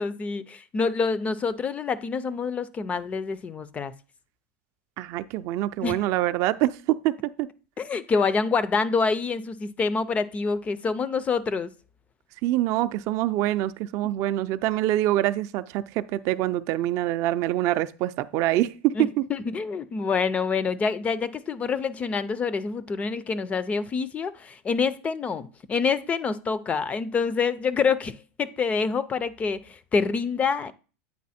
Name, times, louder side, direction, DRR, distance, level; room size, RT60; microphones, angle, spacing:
voice 1, 0.0-3.9 5.8-6.0 7.8-11.7 19.0-30.7, left 5 dB, 20° left, 0.4 m, -27 dB
voice 2, 5.0-7.5 12.4-19.3, right 14 dB, 45° right, 0.4 m, -25 dB
8.5 x 4.1 x 4.2 m
supercardioid pair, 140°, 7 cm